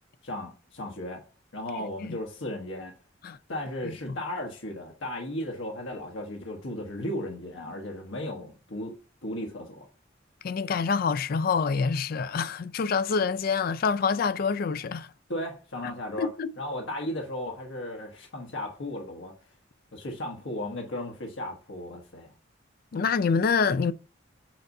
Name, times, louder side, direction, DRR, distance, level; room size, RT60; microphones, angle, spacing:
voice 1, 0.2-1.2 1.5-2.9 3.5-8.9 9.2-9.9 15.3-16.3 16.6-19.3 19.9-22.3, left 1 dB, 80° left, 1.2 m, -35 dB
voice 2, 10.4-15.1 16.2-16.5 22.9-23.9, left 5 dB, 50° left, 0.4 m, -26 dB
7.6 x 2.6 x 5.3 m
head